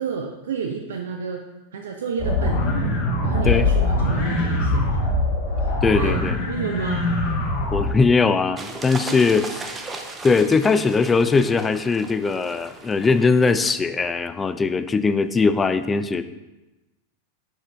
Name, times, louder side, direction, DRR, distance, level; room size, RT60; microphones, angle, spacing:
voice 1, 0.0-1.4 1.7-2.7 3.2-5.1 5.5-7.1 9.1-9.2, right 6 dB, 60° right, 2 dB, 0.4 m, -30 dB
sound 1, 2.2-7.9, left 2 dB, 40° left, 1.2 m, -22 dB
voice 2, 5.8-6.4 7.7-9.7 10.2-16.2, left 4 dB, 15° left, 12 dB, 0.3 m, -20 dB
sound 2, 8.6-13.7, right 3 dB, 15° right, 0.7 m, -37 dB
6.2 x 5.1 x 3.3 m, 1.0 s
figure-of-eight pair, 90°, 0 cm